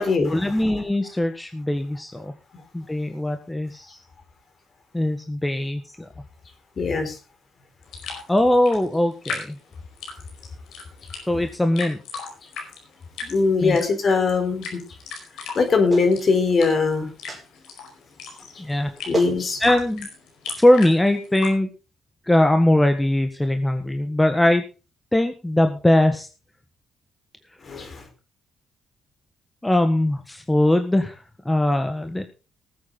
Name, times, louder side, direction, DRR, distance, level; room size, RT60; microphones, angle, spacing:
voice 1, 0.3-2.3 2.7-4.0 4.9-6.1 8.3-9.6 11.3-12.0 13.6-13.8 14.0-14.2 18.6-18.9 19.6-20.1 20.6-21.7 22.3-24.6 25.1-26.3 29.6-31.2 31.4-32.3, left 1 dB, 10° left, 6 dB, 1.6 m, -21 dB
voice 2, 6.8-7.1 13.2-14.8 15.5-17.1 19.1-19.6 27.7-28.0, left 4 dB, 45° left, 7 dB, 4.4 m, -21 dB
sound 1, 7.8-21.5, left 5 dB, 85° left, 5.0 m, -37 dB
Clapping, 15.9-16.1 17.3-17.5 18.7-18.8 19.1-19.4 20.5-20.6, right 3 dB, 20° right, 4.9 m, -29 dB
19.0 x 8.5 x 4.0 m, 0.32 s
cardioid pair, 90°, 0 cm